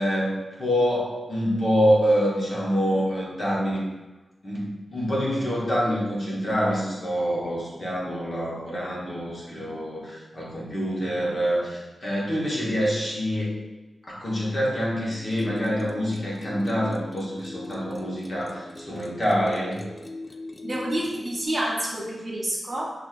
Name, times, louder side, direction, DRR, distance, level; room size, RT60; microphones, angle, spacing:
voice 1, 0.0-3.8 4.4-13.5 14.1-19.8, equal, 40° left, -5 dB, 1.1 m, -26 dB
sound 1, 15.1-21.5, left 2 dB, 15° left, 0.3 m, -39 dB
voice 2, 20.6-22.9, right 1 dB, 25° right, -2 dB, 0.6 m, -28 dB
6.1 x 2.5 x 2.4 m, 1.1 s
wide cardioid pair, 125°, 0 cm